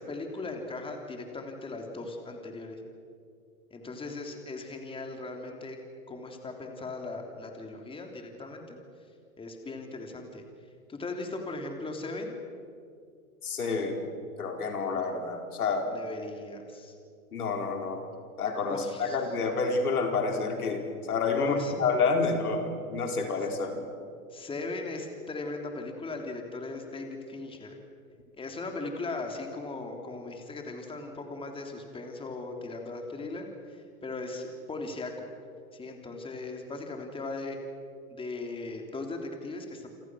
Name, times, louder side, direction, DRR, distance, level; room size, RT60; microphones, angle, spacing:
voice 1, 0.0-2.8 3.7-5.8 6.1-8.8 9.4-10.4 10.9-12.3 15.9-16.9 18.6-19.2 21.3-21.8 24.3-27.8 28.4-35.3 35.7-37.6 38.1-39.9, left 3 dB, 10° left, 3 dB, 3.2 m, -38 dB
voice 2, 13.4-14.0 14.4-15.9 17.3-18.0 18.4-23.8, left 4 dB, 90° left, 3 dB, 4.6 m, -29 dB
28.5 x 25.5 x 6.3 m, 2.4 s
hypercardioid pair, 130°, 43 cm